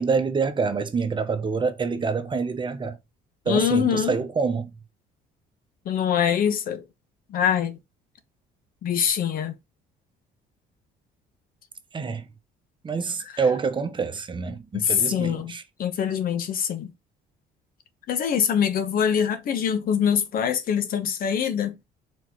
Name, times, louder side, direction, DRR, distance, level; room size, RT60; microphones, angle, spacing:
voice 1, 0.0-3.0 3.4-4.7 11.9-12.3 12.8-15.6, right 5 dB, 30° right, 1.0 m, -26 dB
voice 2, 3.5-4.2 5.8-6.8 7.3-7.8 8.8-9.5 14.7-15.5 15.8-16.9 18.1-21.7, left 8 dB, 60° left, 1.1 m, -24 dB
4.8 x 4.3 x 4.7 m
cardioid pair, 110°, 17 cm